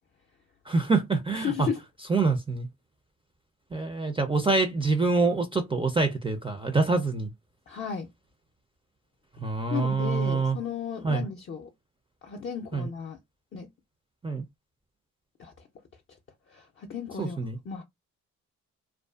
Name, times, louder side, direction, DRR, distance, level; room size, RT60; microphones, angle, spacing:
voice 1, 0.7-1.7 2.1-2.7 3.7-7.3 9.4-10.6 11.0-11.2 12.7-12.9 14.2-14.4 17.2-17.6, right 3 dB, 15° right, 0.4 m, -25 dB
voice 2, 1.3-1.8 7.7-8.1 9.7-11.7 12.2-13.2 13.5-13.7 15.4-15.7 16.5-17.4 17.6-17.8, left 7 dB, 40° left, 0.5 m, -34 dB
2.5 x 2.3 x 2.2 m
supercardioid pair, 65°, 32 cm